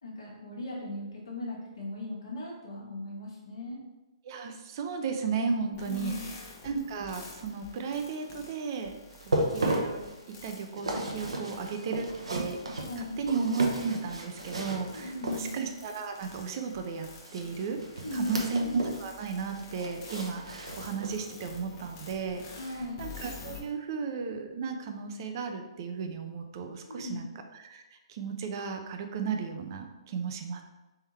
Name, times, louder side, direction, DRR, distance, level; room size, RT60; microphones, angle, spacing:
voice 1, 0.0-3.8 5.8-6.2 12.9-13.2 14.9-15.5 18.0-18.5 22.6-23.0 26.9-27.3, left 2 dB, 75° left, -6 dB, 1.5 m, -38 dB
voice 2, 4.2-6.1 6.6-8.9 9.3-10.0 10.4-17.8 18.1-22.5 23.0-27.3 27.6-27.8 28.1-30.6, right 5 dB, 45° right, 5 dB, 0.6 m, -34 dB
sound 1, 5.7-23.6, left 4 dB, 30° left, 1.1 m, -49 dB
sound 2, 9.1-15.8 17.2-19.1 19.3-21.3 21.7-21.9 22.4-22.5, right 1 dB, 75° right, 0.9 m, -35 dB
3.6 x 3.4 x 4.3 m, 1.1 s
figure-of-eight pair, 130°, 3 cm